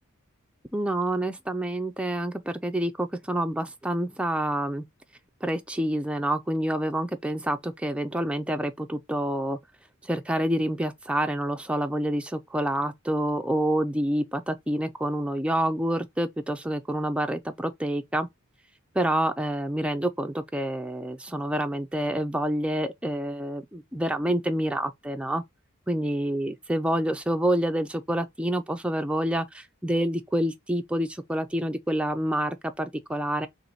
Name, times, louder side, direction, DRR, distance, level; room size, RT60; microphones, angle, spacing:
voice 1, 0.7-4.8 5.4-9.6 10.0-18.3 18.9-25.4 25.9-33.5, right 1 dB, 5° right, 0.4 m, -27 dB
3.1 x 2.9 x 3.8 m
head